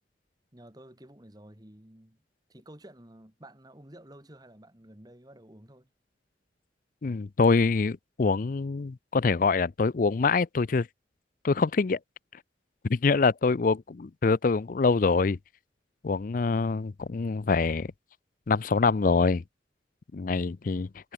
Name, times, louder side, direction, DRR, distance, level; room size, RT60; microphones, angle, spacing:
voice 1, 0.5-2.2 2.5-5.9, right 1 dB, 20° right, 2.4 m, -51 dB
voice 2, 7.0-10.9 11.4-12.0 12.8-15.4 16.0-17.9 18.5-19.4 20.1-20.9, left 4 dB, 50° left, 0.5 m, -25 dB
head